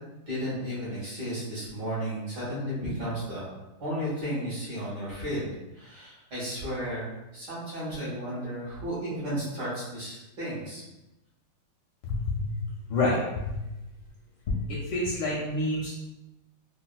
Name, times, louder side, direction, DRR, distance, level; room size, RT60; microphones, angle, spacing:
voice 1, 0.3-3.4 3.8-5.5 5.8-10.8, equal, 55° right, -9 dB, 1.6 m, -33 dB
voice 2, 12.0-12.5 12.9-13.6 14.5-15.9, left 2 dB, 75° left, -4 dB, 1.1 m, -28 dB
4.0 x 2.2 x 2.2 m, 0.98 s
omnidirectional pair, 2.4 m